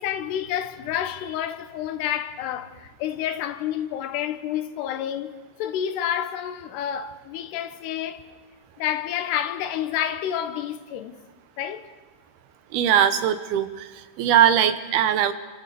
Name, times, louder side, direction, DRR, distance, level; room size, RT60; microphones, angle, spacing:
voice 1, 0.0-8.2 8.8-11.2 11.6-11.8, left 10 dB, 90° left, 3.2 m, -29 dB
voice 2, 12.7-15.3, right 9 dB, 75° right, 3.0 m, -20 dB
29.5 x 26.0 x 6.9 m
omnidirectional pair, 4.6 m